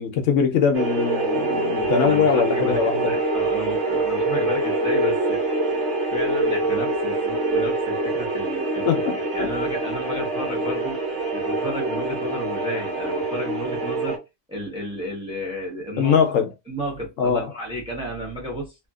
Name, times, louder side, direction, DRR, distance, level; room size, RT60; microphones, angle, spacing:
voice 1, 0.0-3.1 8.9-9.5 16.0-16.5 17.2-17.5, left 7 dB, 75° left, 0.9 m, -22 dB
sound 1, 0.7-14.2, right 2 dB, 65° right, 1.2 m, -25 dB
voice 2, 2.0-2.8 3.0-5.4 6.1-8.9 9.3-11.0 11.3-14.2 14.5-16.2 16.7-18.7, equal, 5° right, 0.8 m, -32 dB
2.7 x 2.6 x 2.3 m
omnidirectional pair, 1.4 m